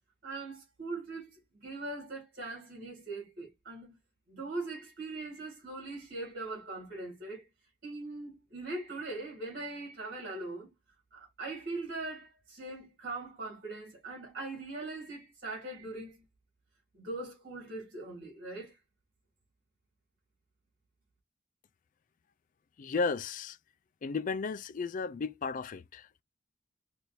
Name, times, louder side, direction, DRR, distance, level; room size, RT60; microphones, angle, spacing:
voice 1, 0.2-4.0 4.3-7.5 7.8-10.7 11.1-16.2 16.9-18.8, right 2 dB, 50° right, 2.2 m, -41 dB
voice 2, 22.8-23.6 24.0-26.2, left 4 dB, 40° left, 0.3 m, -34 dB
4.4 x 3.4 x 2.6 m
head